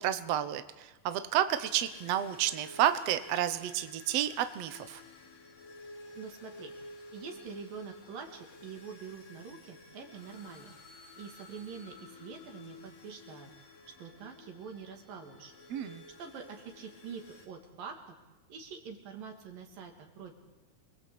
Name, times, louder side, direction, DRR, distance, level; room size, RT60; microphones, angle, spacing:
voice 1, 0.0-5.0 15.7-16.0, right 11 dB, 65° right, 10 dB, 1.8 m, -30 dB
sound 1, 1.5-17.5, left 2 dB, 75° left, 4.4 m, -52 dB
voice 2, 6.2-6.7 7.1-10.7 11.2-13.5 13.9-15.5 16.2-18.2 18.5-20.3, right 6 dB, 80° right, 3 dB, 4.5 m, -45 dB
28.5 x 21.0 x 8.5 m, 1.1 s
omnidirectional pair, 3.9 m